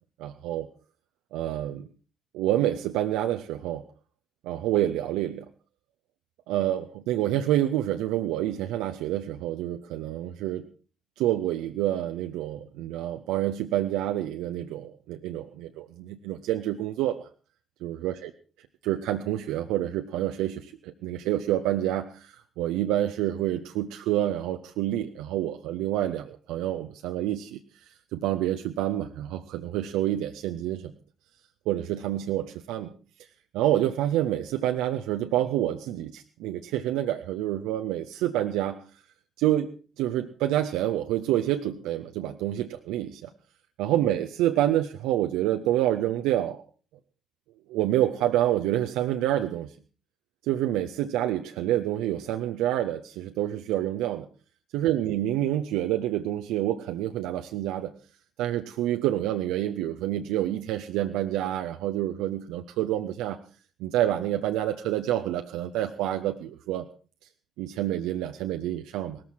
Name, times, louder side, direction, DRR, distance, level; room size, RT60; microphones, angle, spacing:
voice 1, 0.2-0.7 1.3-1.9 2.3-3.8 4.4-5.4 6.5-10.7 11.2-17.3 17.8-18.3 18.8-27.6 28.1-30.9 31.7-32.9 33.5-38.8 39.4-39.7 40.0-43.3 43.8-46.6 47.7-49.7 50.4-54.3 54.7-57.9 58.4-63.4 63.8-66.9 67.6-69.2, right 13 dB, 60° right, 6 dB, 0.8 m, -28 dB
18.5 x 13.5 x 4.5 m, 0.38 s
figure-of-eight pair, 45°, 0 cm